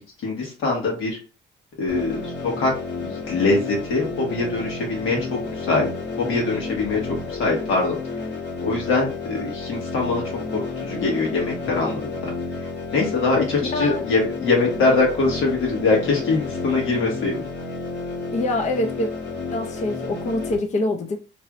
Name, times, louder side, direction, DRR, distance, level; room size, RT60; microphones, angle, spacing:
voice 1, 0.2-1.2 1.8-2.7 3.0-5.9 6.2-7.0 7.3-8.0 8.6-10.2 10.5-12.2 12.9-17.4, left 3 dB, 85° left, 1.5 m, -23 dB
sound 1, 1.9-20.5, left 3 dB, 60° left, 1.0 m, -31 dB
voice 2, 13.7-14.0 18.3-19.1 19.5-21.2, left 1 dB, 35° left, 0.5 m, -25 dB
3.1 x 3.0 x 2.5 m
cardioid pair, 90°, 20 cm